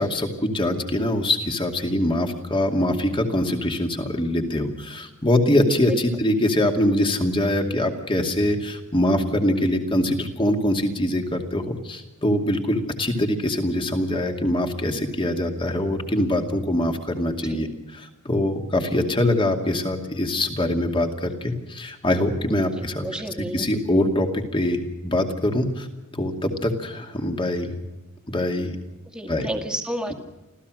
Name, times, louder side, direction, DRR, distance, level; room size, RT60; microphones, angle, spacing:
voice 1, 0.0-17.7 17.9-23.0 23.5-25.9 26.1-27.7 28.3-28.8 29.3-29.5, left 1 dB, 25° left, 4 dB, 2.5 m, -23 dB
voice 2, 22.8-23.7 29.1-30.1, equal, 5° right, 4 dB, 2.1 m, -31 dB
26.0 x 16.0 x 6.4 m, 1.0 s
head